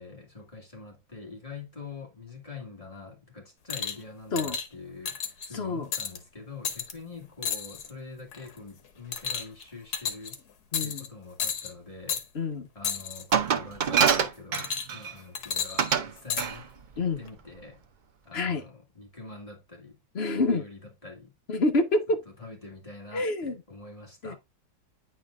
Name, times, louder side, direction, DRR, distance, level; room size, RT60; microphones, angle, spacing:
voice 1, 0.0-5.2 5.5-10.4 10.8-12.2 12.7-16.7 17.0-17.8 18.3-20.0 20.4-21.3 22.1-24.3, left 4 dB, 20° left, 2.0 m, -45 dB
sound 1, 3.7-4.0 4.4-4.7 5.1-5.5 5.9-6.2 6.7-6.9 7.4-7.9 8.3-8.6 9.1-9.6 9.9-10.4 10.7-11.1 11.4-11.7 12.1-12.2 12.8-13.2 14.5-15.0 15.4-16.5 17.3-17.4, left 7 dB, 75° left, 1.5 m, -32 dB
voice 2, 5.5-5.9 10.7-11.0 12.3-12.7 17.0-17.2 18.3-18.6 20.1-20.6 21.5-22.2 23.1-23.5 24.2-24.3, left 2 dB, 45° left, 1.4 m, -27 dB
Glass, 13.3-15.1 15.8-16.1 16.4-16.6, right 7 dB, 80° right, 0.4 m, -24 dB
9.3 x 4.6 x 2.4 m
omnidirectional pair, 1.7 m